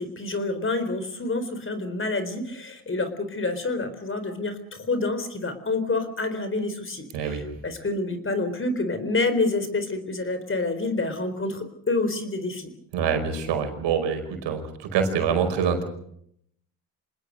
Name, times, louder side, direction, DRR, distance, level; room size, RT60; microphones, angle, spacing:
voice 1, 0.0-12.7, left 3 dB, 25° left, 11 dB, 4.1 m, -28 dB
voice 2, 12.9-14.6 14.9-15.8, right 6 dB, 70° right, 6 dB, 5.3 m, -25 dB
26.5 x 19.5 x 6.6 m, 0.71 s
supercardioid pair, 85°, 44 cm